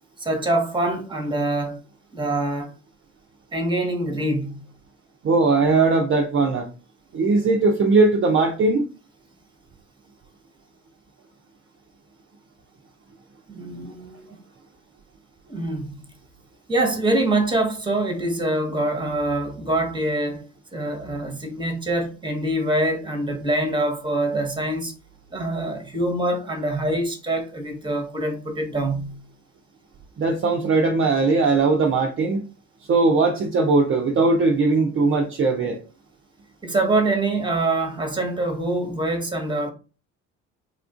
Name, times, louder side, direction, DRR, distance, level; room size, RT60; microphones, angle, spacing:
voice 1, 0.2-1.8 2.1-2.7 3.5-4.6 13.5-14.4 15.5-16.0 16.7-20.5 20.7-24.9 25.3-29.2 36.6-39.7, right 2 dB, 15° right, 1.1 m, -25 dB
voice 2, 5.2-6.7 7.1-8.8 30.2-32.4 32.9-35.8, right 3 dB, 35° right, 0.6 m, -19 dB
3.6 x 2.4 x 2.4 m
hypercardioid pair, 60°, 36 cm